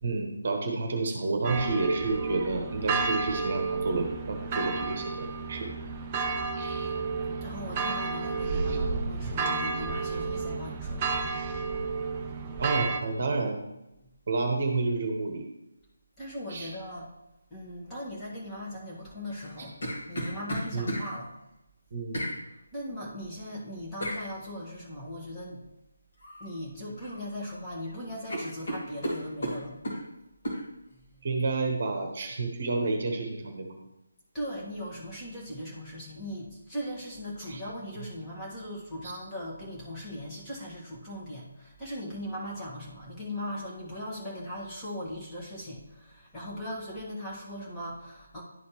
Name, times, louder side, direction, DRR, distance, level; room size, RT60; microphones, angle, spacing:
voice 1, 0.0-5.7 6.5-6.9 8.7-8.8 9.2-9.3 9.9-10.0 12.6-13.6 14.3-15.4 16.5-16.7 19.6-19.7 20.7-20.9 21.9-22.2 31.2-33.7 37.5-37.6 39.0-39.1, right 3 dB, 40° right, 3 dB, 1.1 m, -30 dB
sound 1, 1.4-13.0, right 4 dB, 20° right, 0.5 m, -31 dB
voice 2, 7.4-11.2 16.2-17.1 17.5-19.8 20.1-21.3 22.7-25.6 26.4-29.7 30.9-31.3 34.3-48.4, equal, 10° left, -7 dB, 1.6 m, -39 dB
sound 2, 19.3-21.1 22.1-22.4 24.0-24.2 26.2-26.5 26.8-27.5 27.8-27.9 28.3-30.0 30.4-30.6, equal, 50° left, 2.3 m, -34 dB
11.0 x 4.2 x 3.1 m, 0.94 s
figure-of-eight pair, 150°, 0 cm